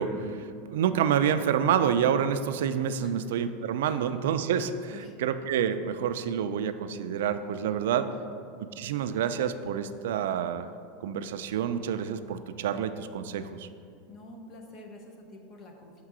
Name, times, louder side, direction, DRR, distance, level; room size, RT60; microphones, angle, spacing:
voice 1, 0.0-4.9 5.2-8.1 8.6-10.7 11.0-13.7, right 8 dB, 80° right, 10 dB, 0.3 m, -28 dB
voice 2, 7.9-8.3 14.1-16.0, left 1 dB, 25° left, 3 dB, 0.7 m, -48 dB
6.5 x 3.7 x 6.1 m, 2.5 s
supercardioid pair, 180°, 0 cm